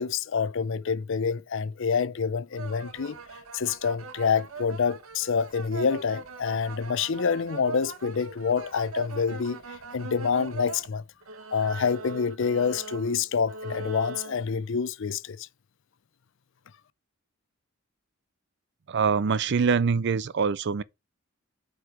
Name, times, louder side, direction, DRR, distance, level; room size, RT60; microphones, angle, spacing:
voice 1, 0.0-3.2 3.5-11.0 11.5-15.5, left 6 dB, 65° left, 0.5 m, -27 dB
sound 1, 2.5-10.9 11.2-14.4, right 2 dB, 85° right, 1.1 m, -40 dB
voice 2, 18.9-20.8, right 5 dB, 55° right, 0.5 m, -24 dB
8.0 x 4.8 x 4.8 m
head